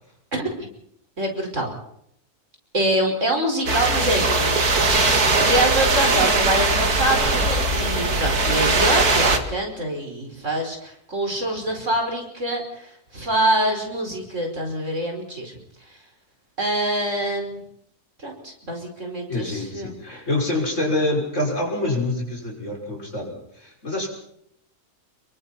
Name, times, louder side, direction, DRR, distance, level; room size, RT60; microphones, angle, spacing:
voice 1, 0.3-0.7 1.2-1.7 2.7-15.5 16.6-17.7 18.2-20.0, right 1 dB, 50° right, 2 dB, 5.5 m, -25 dB
sound 1, 3.7-9.4, right 3 dB, 75° right, 2.6 m, -20 dB
voice 2, 19.3-24.1, left 2 dB, 50° left, 0 dB, 6.7 m, -26 dB
28.0 x 23.0 x 4.3 m, 0.72 s
omnidirectional pair, 1.6 m